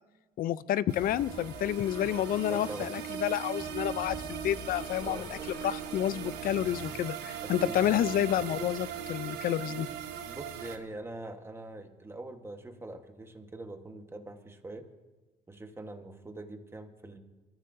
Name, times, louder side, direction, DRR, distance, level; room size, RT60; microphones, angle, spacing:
voice 1, 0.4-9.9, left 11 dB, 60° left, 18 dB, 0.5 m, -30 dB
sound 1, 0.9-10.8, right 9 dB, 85° right, 1.1 m, -39 dB
sound 2, 1.0-6.9, left 2 dB, 25° left, 1.2 m, -48 dB
voice 2, 2.5-2.9 5.0-5.3 7.4-7.8 10.2-14.9 15.5-17.2, right 2 dB, 15° right, 6 dB, 1.3 m, -43 dB
24.0 x 14.0 x 2.7 m, 1.2 s
cardioid pair, 110°, 17 cm